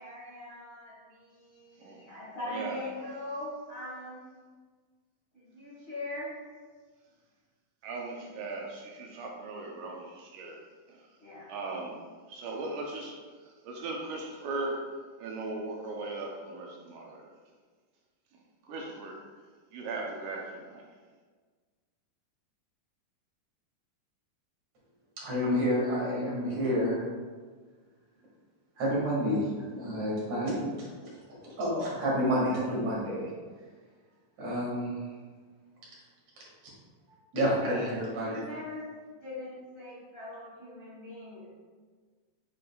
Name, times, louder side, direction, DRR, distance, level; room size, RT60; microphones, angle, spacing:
voice 1, 0.0-4.2 5.3-6.3 11.2-11.5 37.6-37.9 38.2-38.8 39.2-41.5, left 1 dB, 35° left, -9 dB, 1.0 m, -41 dB
voice 2, 2.4-2.8 7.8-10.6 10.9-11.1 11.5-12.0 12.3-14.8 15.2-17.3 18.6-19.2 19.7-20.8, right 3 dB, 75° right, 0 dB, 2.0 m, -38 dB
voice 3, 25.2-27.0 28.8-33.3 34.4-35.0 36.4-36.5 37.3-38.4, equal, 55° right, -5 dB, 2.8 m, -29 dB
8.4 x 5.1 x 2.3 m, 1.5 s
omnidirectional pair, 3.9 m